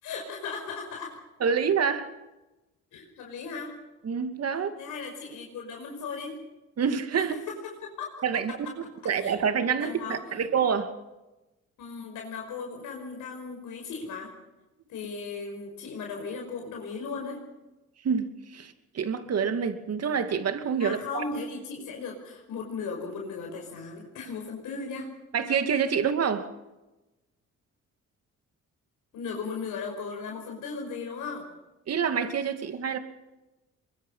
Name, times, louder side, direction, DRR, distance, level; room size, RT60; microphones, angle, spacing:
voice 1, 0.0-1.2 2.9-3.8 4.8-6.4 7.2-7.3 7.8-8.1 8.5-8.6 9.2-9.4 9.8-10.4 11.8-14.3 14.9-17.4 20.8-25.1 29.1-31.5, left 4 dB, 85° left, 5.4 m, -37 dB
voice 2, 1.4-2.1 4.0-4.8 6.8-7.3 8.2-8.5 9.0-10.9 18.0-21.2 25.3-26.5 31.9-33.0, right 6 dB, 55° right, 2.5 m, -27 dB
23.5 x 22.5 x 5.7 m
cardioid pair, 90°, 30 cm